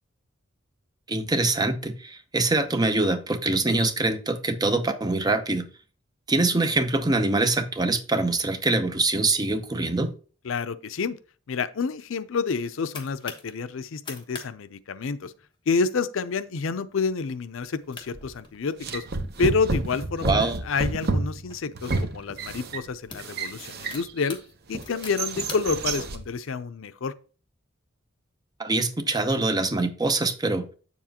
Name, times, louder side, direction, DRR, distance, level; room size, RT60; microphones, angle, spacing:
voice 1, 1.1-5.7 6.3-10.1 20.2-20.6 28.6-30.7, right 2 dB, 20° right, 0.7 m, -24 dB
voice 2, 10.4-11.1 11.5-15.3 15.7-19.0 19.4-24.4 24.7-27.1, left 4 dB, 70° left, 0.5 m, -28 dB
sound 1, 12.6-13.5 13.9-14.5 14.7-14.8 15.2-15.5 16.1-16.3 16.8-16.9 17.6-17.7 17.9-19.1 19.7-21.6 22.3-22.5 22.8-26.0, left 4 dB, 25° left, 1.2 m, -43 dB
sound 2, 18.1-18.4 18.8-24.3 24.7-26.3, right 3 dB, 50° right, 0.8 m, -30 dB
7.8 x 7.2 x 2.9 m
head